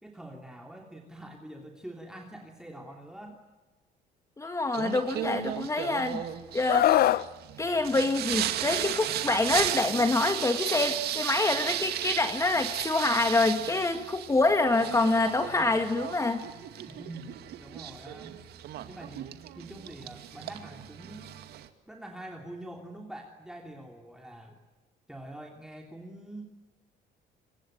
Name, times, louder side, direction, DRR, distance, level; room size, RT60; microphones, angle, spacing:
voice 1, 0.0-3.4 16.9-18.4 18.9-21.3 21.9-24.6 25.1-26.4, right 1 dB, 5° right, 2 dB, 3.1 m, -45 dB
voice 2, 4.4-6.2 6.5-7.1 7.6-16.4, left 2 dB, 20° left, 7 dB, 1.8 m, -26 dB
Singing, 4.7-21.7, right 12 dB, 70° right, 2.2 m, -35 dB
Screaming, 6.7-7.2 8.7-8.9, left 13 dB, 65° left, 0.9 m, -22 dB
27.0 x 23.5 x 9.1 m, 1.2 s
cardioid pair, 110°, 17 cm